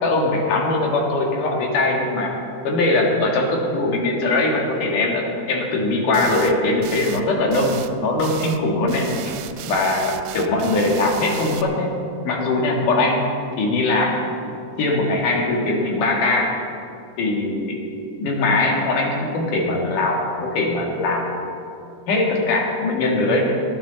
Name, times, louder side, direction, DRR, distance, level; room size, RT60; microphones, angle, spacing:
voice 1, 0.0-2.3 2.7-9.1 9.7-11.9 12.3-14.2 14.8-16.5 17.2-17.8 18.2-21.3 22.1-23.5, left 2 dB, 80° left, 0 dB, 3.6 m, -21 dB
sound 1, 6.1-6.6 6.8-7.2 7.5-7.9 8.2-8.6 8.9-11.6, right 11 dB, 90° right, 2.3 m, -34 dB
20.5 x 12.0 x 4.1 m, 2.5 s
omnidirectional pair, 3.6 m